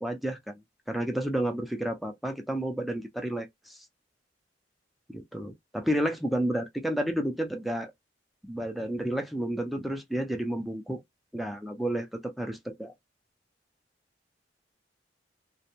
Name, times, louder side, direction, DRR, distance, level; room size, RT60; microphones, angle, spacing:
voice 1, 0.0-0.5 0.9-3.8 5.1-7.9 8.4-11.0 11.3-12.9, right 1 dB, ahead, 0.4 m, -31 dB
2.5 x 2.1 x 2.9 m
head